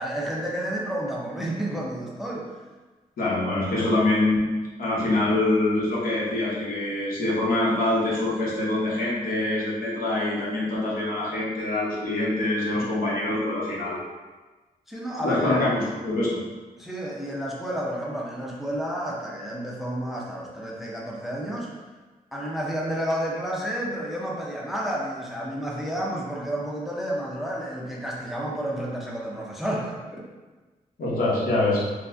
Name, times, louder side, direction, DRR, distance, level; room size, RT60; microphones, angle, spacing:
voice 1, 0.0-2.5 12.7-12.9 14.9-15.7 16.8-21.8 22.3-30.0, right 1 dB, ahead, -3 dB, 0.5 m, -31 dB
voice 2, 3.2-4.4 4.8-14.0 15.2-16.3 31.0-31.8, left 2 dB, 75° left, -5 dB, 1.0 m, -24 dB
4.5 x 2.1 x 2.6 m, 1.3 s
wide cardioid pair, 140°, 15 cm